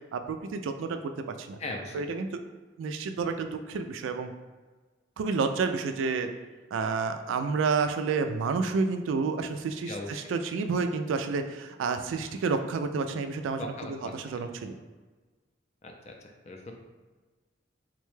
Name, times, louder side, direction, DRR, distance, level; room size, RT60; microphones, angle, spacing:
voice 1, 0.1-1.6 1.9-2.4 2.8-4.3 5.2-6.3 6.7-14.8, right 4 dB, 90° right, 7 dB, 0.3 m, -30 dB
voice 2, 1.6-2.0 9.9-10.2 13.6-14.1 15.8-16.1 16.5-16.7, left 2 dB, 35° left, 2 dB, 0.4 m, -38 dB
3.9 x 2.2 x 3.1 m, 1.3 s
head